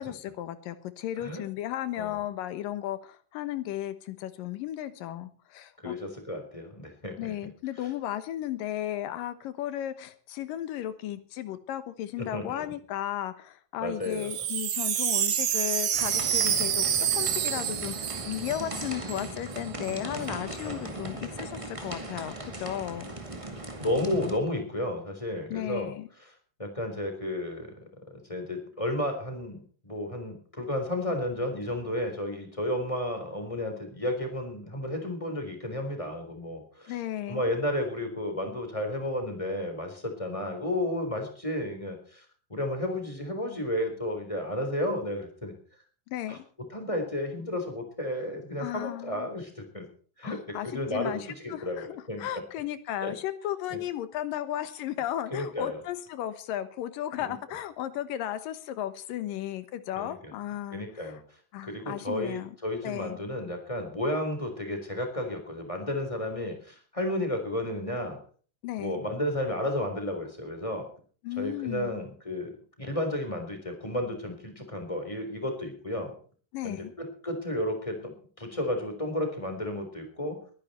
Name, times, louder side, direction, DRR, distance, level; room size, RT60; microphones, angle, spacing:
voice 1, 0.0-5.9 7.2-16.9 17.1-23.1 25.5-26.1 36.9-37.5 46.1-46.5 48.6-49.3 50.2-61.1 61.5-62.6 62.8-63.2 68.6-69.0 71.2-72.0 76.5-76.9, left 12 dB, 80° left, 12 dB, 2.8 m, -35 dB
voice 2, 5.8-7.3 7.8-7.9 12.2-12.6 13.8-14.3 20.5-21.1 23.8-25.9 26.2-26.3 26.6-27.8 28.1-37.0 37.3-45.5 46.3-46.4 46.7-49.9 50.2-52.2 53.0-53.1 53.7-53.8 55.3-55.8 57.3-57.4 60.0-60.3 60.7-61.2 61.6-68.2 68.8-70.9 71.4-72.5 72.8-76.2 76.6-80.4, left 1 dB, 10° left, 4 dB, 3.6 m, -32 dB
Wind chime, 14.0-19.3 19.5-19.6 19.8-20.3, right 9 dB, 80° right, 3.1 m, -28 dB
sound 1, 15.9-24.4, right 2 dB, 15° right, 1.2 m, -38 dB
21.5 x 10.5 x 4.4 m, 0.43 s
omnidirectional pair, 3.9 m